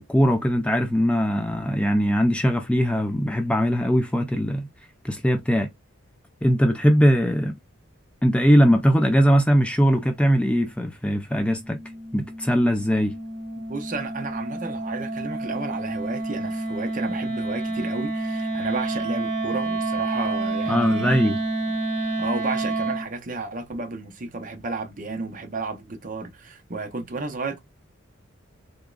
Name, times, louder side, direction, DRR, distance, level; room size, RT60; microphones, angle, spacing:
voice 1, 0.1-4.7 5.0-5.7 6.4-7.5 8.2-11.8 12.1-13.2 20.7-21.4, equal, 5° left, 0.3 m, -20 dB
Wind instrument woodwind instrument, 11.6-23.1, right 2 dB, 65° right, 1.5 m, -29 dB
voice 2, 13.6-21.2 22.0-27.6, right 3 dB, 40° right, 0.7 m, -32 dB
3.6 x 3.0 x 2.2 m
head